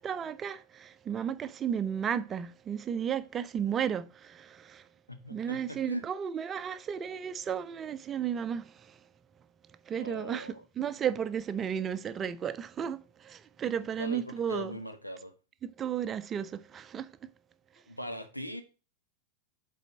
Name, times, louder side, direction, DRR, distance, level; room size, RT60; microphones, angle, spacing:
voice 1, 0.0-4.9 5.3-9.0 9.9-14.8 15.6-17.1, right 8 dB, 25° right, 0.5 m, -34 dB
voice 2, 5.1-6.0 10.0-11.0 14.0-15.3 17.9-18.6, equal, 85° left, 1.1 m, -40 dB
8.1 x 4.2 x 4.0 m
figure-of-eight pair, 90°, 0 cm